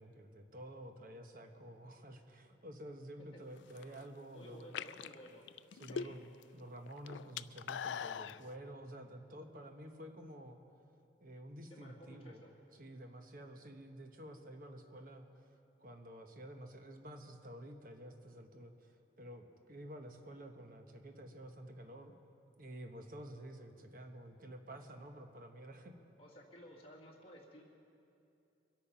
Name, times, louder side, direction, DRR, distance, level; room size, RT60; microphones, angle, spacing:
voice 1, 0.0-4.8 5.7-10.6 11.2-12.4 12.8-15.3 15.8-22.1 22.6-25.9, right 1 dB, 45° right, 5 dB, 1.1 m, -50 dB
sound 1, 3.6-4.0 4.6-6.4 6.7-8.4, left 7 dB, 75° left, 0.3 m, -42 dB
voice 2, 4.3-5.5 5.9-6.1 11.7-12.5 26.2-27.6, equal, 30° left, -2 dB, 2.0 m, -55 dB
23.5 x 8.7 x 5.7 m, 2.7 s
head